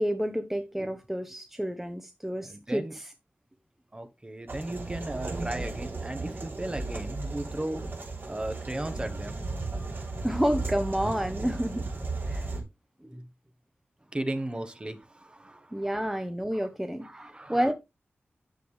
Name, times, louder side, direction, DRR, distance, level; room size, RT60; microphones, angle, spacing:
voice 1, 0.0-3.1 10.2-11.9 12.3-12.5 13.0-13.2 15.7-17.7, equal, 5° right, 0.9 m, -30 dB
voice 2, 2.4-2.9 3.9-7.8 8.3-9.4 14.1-16.1 17.0-17.7, right 1 dB, 20° right, 1.2 m, -36 dB
sound 1, 4.5-12.6, right 3 dB, 55° right, 3.3 m, -35 dB
9.7 x 7.0 x 3.3 m
wide cardioid pair, 100°, 4 cm